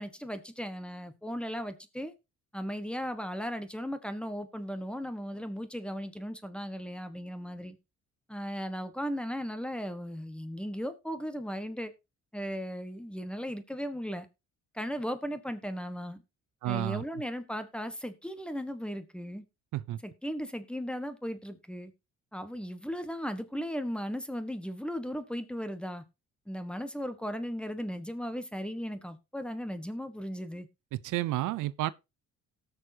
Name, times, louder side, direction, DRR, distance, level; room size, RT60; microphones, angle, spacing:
voice 1, 0.0-2.1 2.5-7.8 8.3-11.9 12.3-14.3 14.7-16.2 16.6-19.4 20.0-21.9 22.3-26.0 26.5-30.7, equal, 5° left, 1.4 m, -36 dB
voice 2, 16.6-17.0 19.7-20.0 30.9-31.9, right 15 dB, 85° right, 0.6 m, -31 dB
18.0 x 6.4 x 2.8 m
cardioid pair, 90°, 30 cm